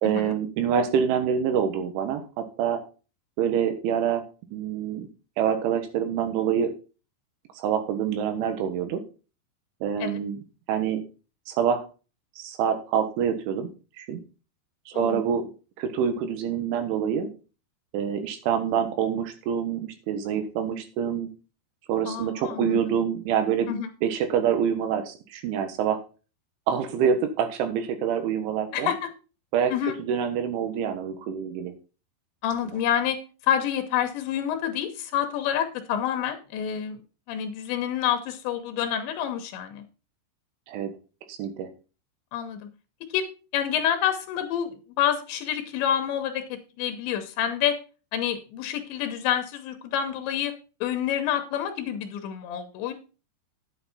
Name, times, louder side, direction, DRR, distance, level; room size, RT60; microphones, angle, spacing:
voice 1, 0.0-2.8 3.4-4.2 4.5-5.1 5.4-6.7 7.6-9.0 9.8-10.4 10.7-11.0 11.5-11.8 12.4-13.7 14.0-14.2 14.9-15.4 15.8-17.3 17.9-21.3 21.9-23.7 24.0-26.0 26.7-28.9 29.5-29.7 30.0-31.7 40.7-40.9 41.3-41.7, right 8 dB, 85° right, 8 dB, 3.8 m, -26 dB
voice 2, 14.9-15.3 22.1-22.8 23.7-23.9 28.7-29.1 29.7-30.0 32.4-33.2 33.4-37.0 37.3-39.8 42.3-42.6 43.1-43.3 43.5-47.8 48.1-50.5 50.8-52.9, left 9 dB, 80° left, 7 dB, 3.2 m, -28 dB
9.6 x 8.8 x 4.2 m, 0.34 s
omnidirectional pair, 5.3 m